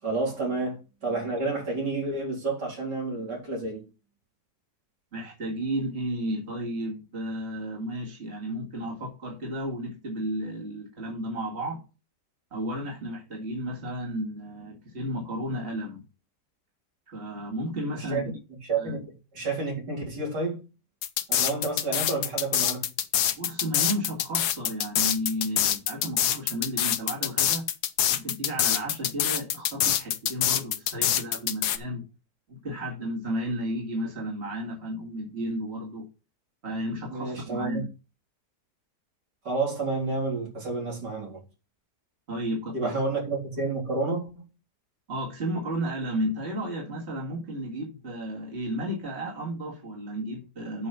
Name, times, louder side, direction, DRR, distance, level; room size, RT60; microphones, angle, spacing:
voice 1, 0.0-3.8 18.1-18.2 18.7-19.0 19.3-20.6 21.3-22.9 37.1-37.8 39.4-41.4 42.7-44.3, right 3 dB, 85° right, 4.5 m, -30 dB
voice 2, 5.1-11.8 12.5-16.0 17.1-18.3 18.8-19.0 23.4-27.7 28.1-32.0 32.5-36.1 36.6-37.9 42.3-43.0 45.1-50.9, equal, 40° right, 2.5 m, -33 dB
sound 1, 21.0-31.8, left 10 dB, 75° left, 1.3 m, -25 dB
8.4 x 5.6 x 5.6 m
omnidirectional pair, 1.8 m